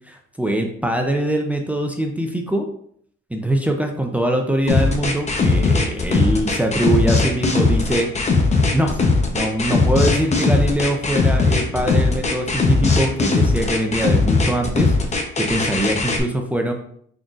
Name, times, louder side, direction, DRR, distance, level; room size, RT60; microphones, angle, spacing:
voice 1, 0.1-2.7 3.3-8.4 8.7-9.0 9.3-14.9 15.4-16.7, right 1 dB, 5° right, 3 dB, 0.5 m, -22 dB
sound 1, 4.7-16.2, left 3 dB, 35° left, 0.7 m, -18 dB
3.8 x 3.7 x 2.4 m, 0.65 s
cardioid pair, 90°, 20 cm